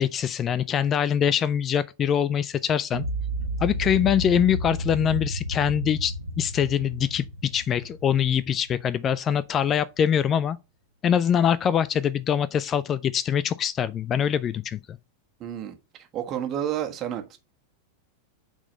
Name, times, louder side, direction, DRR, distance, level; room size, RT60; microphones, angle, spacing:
voice 1, 0.0-3.0 3.6-10.6 11.0-15.0, left 9 dB, 25° left, 0.4 m, -24 dB
sound 1, 2.9-9.0, equal, 85° right, 0.8 m, -32 dB
voice 2, 15.4-17.4, right 10 dB, 30° right, 1.5 m, -31 dB
8.9 x 4.0 x 5.3 m
figure-of-eight pair, 90°, 0 cm